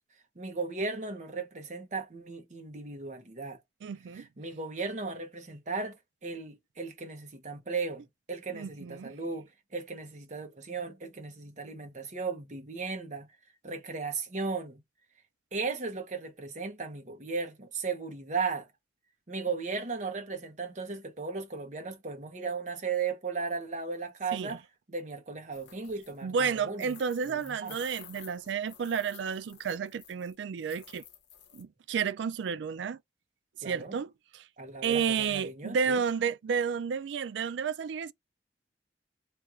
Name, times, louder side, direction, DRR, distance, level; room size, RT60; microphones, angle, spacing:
voice 1, 0.4-3.6 4.1-13.3 13.6-14.8 15.5-18.7 19.3-24.6 24.9-26.9 27.3-27.8 33.6-34.0 34.6-36.0, right 4 dB, 40° right, 0.9 m, -36 dB
voice 2, 3.8-4.3 8.5-9.1 24.3-24.6 26.2-31.0 31.5-33.0 33.6-34.5 34.8-38.1, right 6 dB, 80° right, 0.3 m, -31 dB
sound 1, 25.5-26.2 26.8-30.4 30.6-31.6, left 8 dB, 80° left, 0.8 m, -52 dB
3.2 x 2.4 x 4.3 m
head